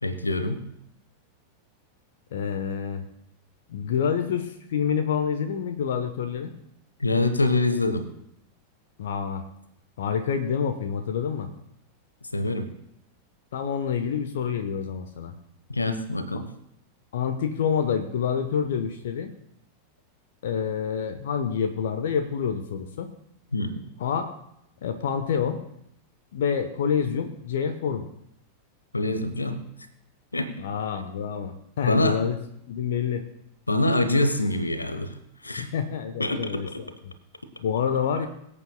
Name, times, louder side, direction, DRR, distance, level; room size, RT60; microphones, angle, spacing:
voice 1, 0.0-0.6 7.0-8.0 12.3-12.7 15.7-16.5 23.5-23.8 28.9-29.6 30.3-30.5 31.8-32.2 33.7-35.2 35.4-35.7 36.2-36.8, left 2 dB, 80° left, 10 dB, 1.0 m, -25 dB
voice 2, 2.3-3.1 3.7-6.5 9.0-9.4 10.0-11.5 13.5-15.3 17.1-19.3 20.4-23.1 24.0-24.3 24.8-25.6 26.3-28.1 30.6-32.4 32.7-33.2 35.6-36.9 37.6-38.3, left 7 dB, 60° left, 8 dB, 0.9 m, -27 dB
22.5 x 8.6 x 2.2 m, 0.75 s
figure-of-eight pair, 90°, 0 cm